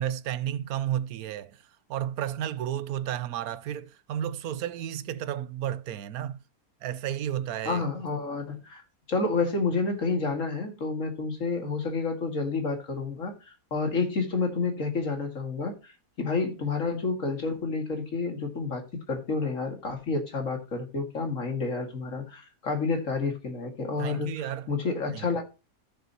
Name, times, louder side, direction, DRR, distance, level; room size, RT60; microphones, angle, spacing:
voice 1, 0.0-1.6 1.9-6.4 6.8-7.8 24.0-24.7 25.1-25.4, right 11 dB, 75° right, 1.1 m, -32 dB
voice 2, 7.6-8.8 9.1-25.4, left 4 dB, 55° left, 2.4 m, -30 dB
14.0 x 6.8 x 2.9 m
omnidirectional pair, 1.6 m